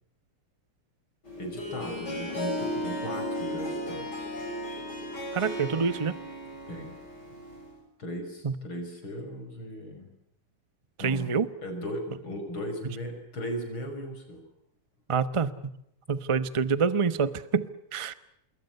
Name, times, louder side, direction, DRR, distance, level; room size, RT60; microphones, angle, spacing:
Harp, 1.2-7.8, left 1 dB, 50° left, 8.1 m, -35 dB
voice 1, 1.4-4.3 6.7-7.0 8.0-10.1 11.0-11.3 11.6-14.4, equal, 65° left, 6 dB, 6.5 m, -37 dB
voice 2, 5.3-6.1 8.4-8.5 11.0-11.5 15.1-15.5 16.1-18.1, right 5 dB, 35° right, 13 dB, 0.5 m, -26 dB
27.0 x 22.0 x 6.7 m, 0.79 s
omnidirectional pair, 2.4 m